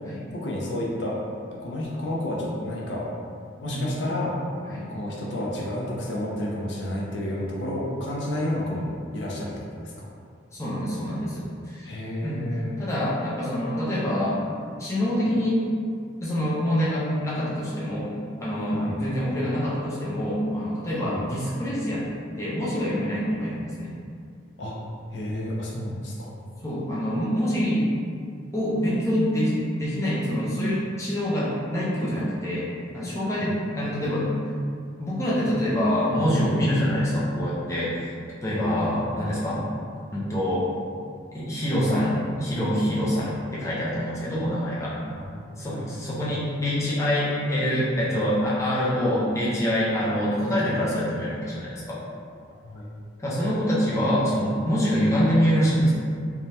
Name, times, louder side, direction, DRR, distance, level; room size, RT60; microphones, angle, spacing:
voice 1, 0.3-1.2 1.5-3.0 3.6-4.4 4.9-10.1 11.8-12.7 18.7-19.0 21.0-21.2 24.6-24.8 25.1-26.3 33.4-33.5 38.7-38.9 45.2-45.9 52.6-52.9, left 1 dB, 70° left, -4 dB, 0.5 m, -31 dB
voice 2, 10.5-12.0 12.2-12.5 12.8-14.4 14.8-15.7 16.2-18.1 18.4-23.9 26.6-27.9 28.5-32.7 32.9-34.3 35.0-38.1 38.4-39.6 40.1-40.7 41.3-45.0 45.6-52.0 53.2-55.9, equal, 15° left, -8 dB, 0.5 m, -25 dB
3.2 x 2.2 x 2.7 m, 2.3 s
head